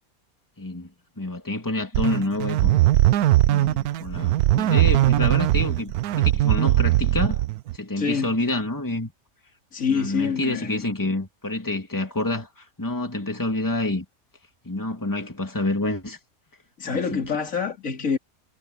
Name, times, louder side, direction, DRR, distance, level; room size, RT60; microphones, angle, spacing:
voice 1, 0.6-0.9 1.2-2.8 3.5-7.4 7.7-9.1 9.9-14.0 14.6-16.2 16.8-17.3, left 2 dB, 15° left, 2.5 m, -28 dB
sound 1, 1.9-7.8, right 15 dB, 90° right, 1.1 m, -20 dB
voice 2, 8.0-8.4 9.7-10.8 16.8-18.2, left 6 dB, 60° left, 3.2 m, -26 dB
omnidirectional pair, 1.6 m